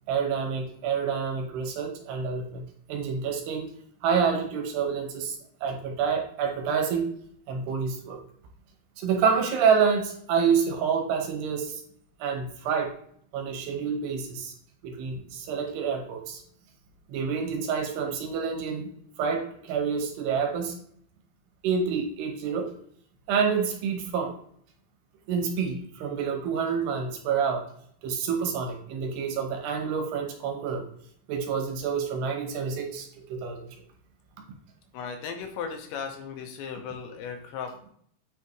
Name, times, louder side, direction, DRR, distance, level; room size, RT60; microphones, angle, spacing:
voice 1, 0.1-3.7 4.0-7.1 7.5-8.2 9.0-11.8 12.2-12.9 13.3-14.5 14.8-16.4 17.1-18.9 19.2-20.8 21.6-22.7 23.3-24.3 25.3-27.6 28.0-30.9 31.3-33.7, right 6 dB, 75° right, 3 dB, 2.8 m, -28 dB
voice 2, 34.9-37.9, left 6 dB, 85° left, 4 dB, 3.2 m, -36 dB
8.8 x 4.7 x 3.1 m, 0.64 s
omnidirectional pair, 5.1 m